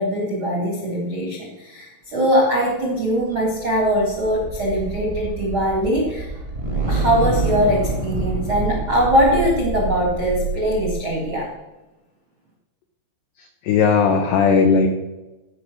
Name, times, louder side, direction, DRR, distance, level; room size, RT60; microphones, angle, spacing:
voice 1, 0.0-6.3 6.9-11.5, equal, 80° right, -2 dB, 1.1 m, -21 dB
sound 1, 3.0-11.4, right 3 dB, 55° right, 0.5 m, -27 dB
voice 2, 13.4-14.9, left 5 dB, 85° left, 4 dB, 2.3 m, -17 dB
14.5 x 5.2 x 6.2 m, 1.1 s
omnidirectional pair, 5.9 m